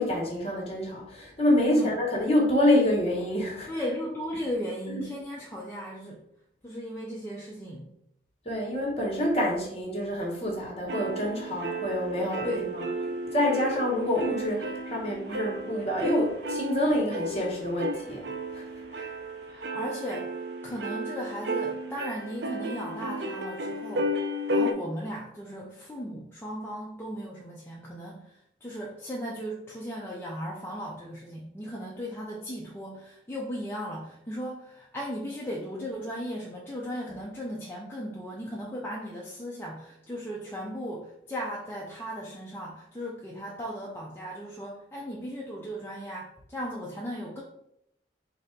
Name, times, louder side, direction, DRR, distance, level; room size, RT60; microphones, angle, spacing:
voice 1, 0.0-3.7 4.9-5.0 8.4-12.9 13.2-18.2 18.5-18.6 18.9-19.1, left 1 dB, 35° left, -1 dB, 1.0 m, -27 dB
voice 2, 3.7-6.2 6.6-7.9 12.4-12.7 19.5-24.1 24.5-47.4, equal, 10° left, -4 dB, 0.4 m, -36 dB
sound 1, 10.9-24.7, right 1 dB, 65° right, 0.4 m, -33 dB
3.3 x 2.6 x 4.4 m, 0.77 s
head